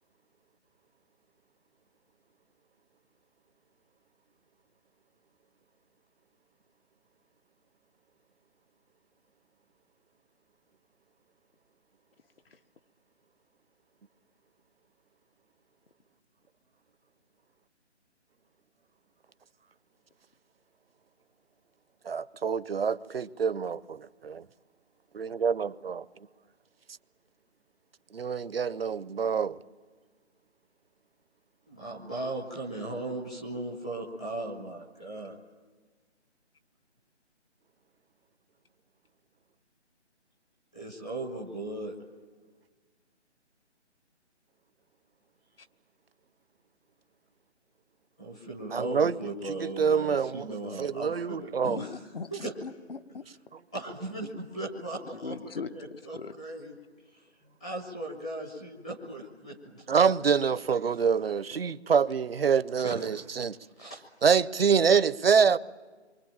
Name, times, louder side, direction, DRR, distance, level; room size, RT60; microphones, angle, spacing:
voice 1, 22.0-24.4 25.1-26.0 28.1-29.6 48.7-49.2 49.4-50.5 50.8-51.8 59.9-63.6 64.2-65.6, right 6 dB, 55° right, 0.7 m, -26 dB
voice 2, 31.7-35.4 40.7-42.0 48.2-51.9 52.3-52.5 53.7-56.7 57.1-60.0 62.8-63.2 63.8-64.0, right 2 dB, 5° left, 0.8 m, -38 dB
voice 3, 51.6-53.3 55.0-56.3, left 4 dB, 55° left, 1.2 m, -40 dB
28.0 x 23.5 x 8.8 m
hypercardioid pair, 165°, 35 cm